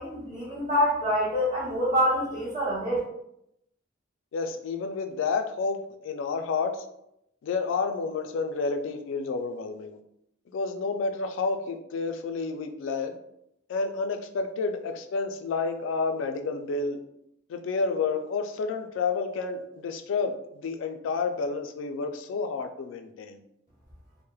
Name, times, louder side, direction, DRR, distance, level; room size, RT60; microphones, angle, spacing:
voice 1, 0.0-3.0, equal, 35° right, -11 dB, 0.8 m, -26 dB
voice 2, 4.3-5.8 6.0-6.8 7.4-10.0 10.5-13.1 13.7-17.0 17.5-23.4, left 4 dB, 75° left, 7 dB, 0.3 m, -30 dB
3.0 x 2.0 x 2.2 m, 0.79 s
head